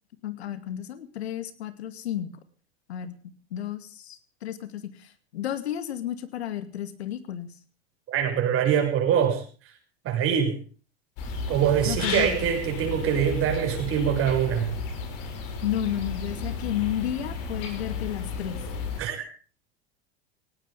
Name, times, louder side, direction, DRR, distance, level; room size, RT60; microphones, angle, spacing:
voice 1, 0.2-2.3 2.9-3.2 3.5-7.5 11.9-12.3 15.6-18.6, left 11 dB, 80° left, 11 dB, 2.3 m, -32 dB
voice 2, 8.1-9.4 10.0-10.6 11.5-14.7 19.0-19.2, right 8 dB, 45° right, 3 dB, 6.7 m, -24 dB
sound 1, 11.2-19.0, left 4 dB, 60° left, 6.3 m, -33 dB
19.0 x 17.5 x 3.6 m, 0.39 s
hypercardioid pair, 100°, 32 cm